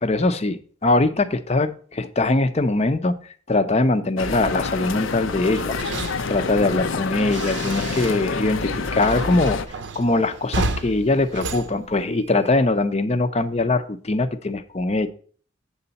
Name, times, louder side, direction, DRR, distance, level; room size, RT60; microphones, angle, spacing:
voice 1, 0.0-3.1 3.5-5.8 6.3-9.6 10.0-15.1, left 2 dB, 30° left, 11 dB, 0.6 m, -22 dB
sound 1, 4.2-9.7, left 4 dB, 75° left, 0.6 m, -27 dB
sound 2, 5.5-8.4 8.7-12.5, right 3 dB, 65° right, 0.6 m, -32 dB
7.9 x 6.8 x 4.0 m, 0.43 s
head